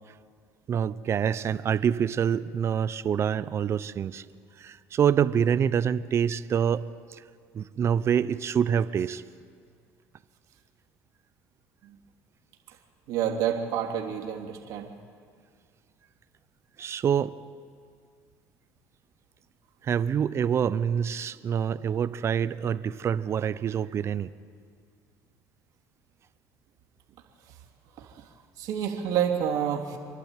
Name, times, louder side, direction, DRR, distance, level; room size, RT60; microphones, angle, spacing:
voice 1, 0.7-4.2 4.6-6.8 7.1-7.2 7.5-9.2 16.8-17.3 19.8-24.3, right 8 dB, 40° right, 15 dB, 0.8 m, -26 dB
voice 2, 13.1-14.9 28.6-30.0, right 9 dB, 65° right, 1 dB, 3.2 m, -28 dB
28.0 x 11.5 x 9.1 m, 2.1 s
supercardioid pair, 90°, 7 cm